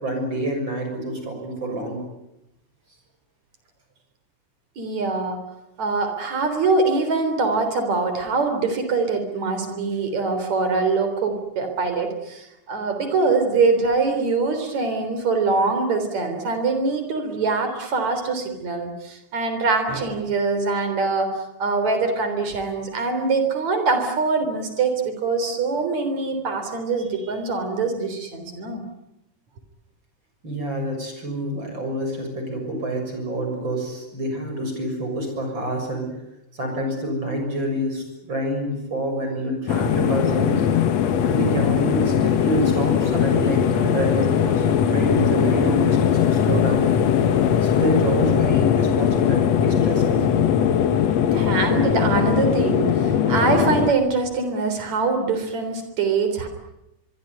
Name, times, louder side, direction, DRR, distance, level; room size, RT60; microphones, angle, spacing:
voice 1, 0.0-2.0 30.4-36.1 36.5-40.7 41.2-46.9 47.6-50.3, right 1 dB, 40° right, 4 dB, 7.4 m, -27 dB
voice 2, 4.8-5.4 5.8-21.3 21.6-28.8 51.3-56.5, right 4 dB, 65° right, 7 dB, 5.0 m, -23 dB
sound 1, 39.7-53.9, left 8 dB, 65° left, 2.3 m, -20 dB
24.0 x 23.5 x 9.5 m, 0.91 s
omnidirectional pair, 3.4 m